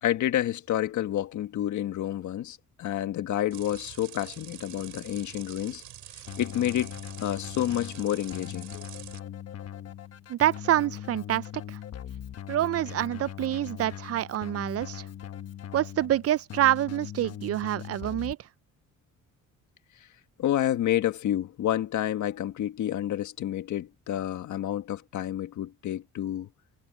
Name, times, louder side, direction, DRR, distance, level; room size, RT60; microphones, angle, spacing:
voice 1, 0.0-5.8 6.1-6.9 7.2-8.9 20.4-26.5, left 12 dB, 75° left, 1.7 m, -29 dB
sound 1, 3.5-9.2, right 12 dB, 80° right, 6.5 m, -46 dB
Keyboard (musical), 6.3-18.3, left 10 dB, 55° left, 1.1 m, -40 dB
voice 2, 10.3-11.8 12.5-15.1 15.7-18.5, right 13 dB, 50° right, 0.4 m, -27 dB
cardioid pair, 90°, 30 cm